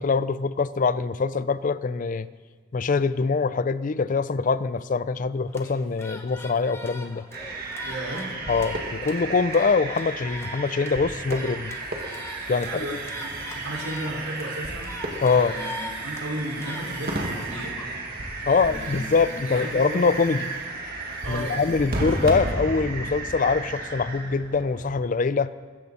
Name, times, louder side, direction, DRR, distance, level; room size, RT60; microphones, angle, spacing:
voice 1, 0.0-2.3 2.7-7.2 8.5-11.7 12.5-12.9 15.2-15.6 18.5-20.5 21.3-25.5, left 4 dB, 40° left, 16 dB, 0.4 m, -24 dB
sound 1, 5.5-18.0, left 1 dB, 15° left, 1.1 m, -42 dB
sound 2, 7.3-25.0, right 2 dB, 45° right, 2.0 m, -33 dB
voice 2, 7.8-8.3 12.6-12.9 13.2-14.9 15.3-17.7 18.5-20.0 21.2-22.0, right 1 dB, 85° right, -3 dB, 5.1 m, -35 dB
sound 3, 11.2-22.4, right 3 dB, 60° right, 4.1 m, -49 dB
21.0 x 15.0 x 4.2 m, 1.5 s
head